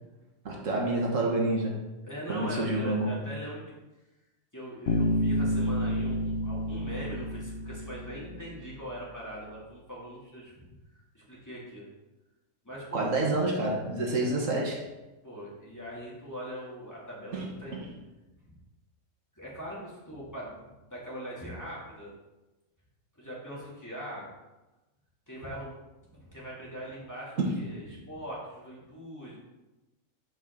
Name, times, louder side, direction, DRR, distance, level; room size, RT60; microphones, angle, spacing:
voice 1, 0.4-1.8 2.3-3.2 12.9-14.8 17.3-17.9 27.4-27.6 27.9-28.0, right 2 dB, 70° right, -1 dB, 1.7 m, -28 dB
voice 2, 2.1-3.6 4.5-10.7 11.1-11.9 12.6-13.1 14.2-14.4 15.2-17.8 19.3-20.6 20.9-22.1 23.2-24.3 25.3-25.7 26.1-29.4, equal, 15° left, -7 dB, 2.5 m, -41 dB
Bass guitar, 4.9-8.6, left 1 dB, 60° left, 0.9 m, -29 dB
5.9 x 5.4 x 6.5 m, 1.1 s
omnidirectional pair, 1.4 m